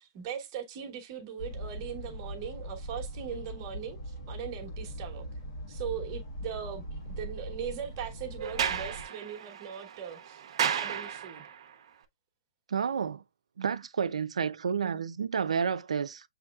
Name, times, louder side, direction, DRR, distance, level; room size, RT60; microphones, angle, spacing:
voice 1, 0.0-5.3 5.7-11.5, right 8 dB, 40° right, 1.1 m, -40 dB
sound 1, 1.4-9.0, equal, 55° left, 1.6 m, -40 dB
Sliding door, 8.4-11.7, right 8 dB, 55° right, 0.8 m, -33 dB
voice 2, 12.7-13.2 13.6-16.2, right 6 dB, 90° right, 0.5 m, -30 dB
7.3 x 3.1 x 2.3 m
hypercardioid pair, 145°, 3 cm